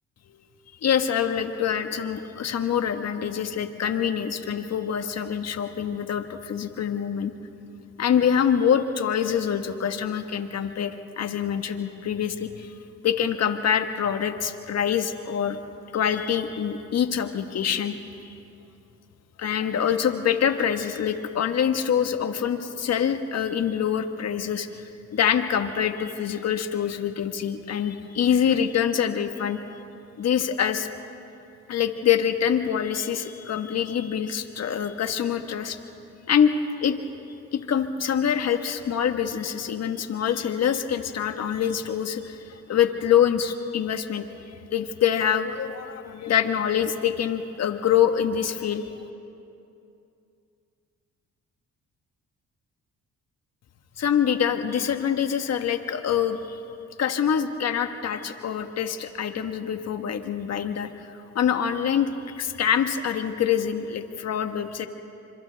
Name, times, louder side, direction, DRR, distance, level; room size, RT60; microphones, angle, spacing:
voice 1, 0.8-7.3 8.0-12.7 13.0-15.6 15.9-17.9 19.4-24.9 25.1-29.6 30.2-30.9 31.7-35.8 36.3-36.5 36.8-37.0 37.5-44.2 44.7-48.9 54.0-56.6 57.0-61.1 61.3-64.9, left 8 dB, 60° left, 7 dB, 1.4 m, -25 dB
29.5 x 25.5 x 3.4 m, 2.7 s
cardioid pair, 90°, 30 cm